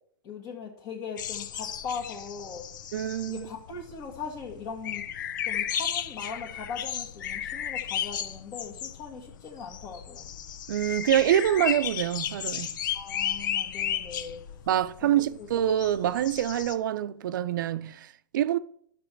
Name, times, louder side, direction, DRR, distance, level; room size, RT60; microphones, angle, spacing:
voice 1, 0.2-2.6 3.3-5.0 5.4-10.2 12.9-14.4 15.0-15.5, left 5 dB, 35° left, 1.6 m, -39 dB
sound 1, 1.2-16.8, left 10 dB, 65° left, 0.7 m, -34 dB
voice 2, 2.9-3.5 10.7-12.8 14.7-18.6, right 11 dB, 70° right, 0.6 m, -26 dB
11.0 x 6.9 x 4.6 m
hypercardioid pair, 145°, 11 cm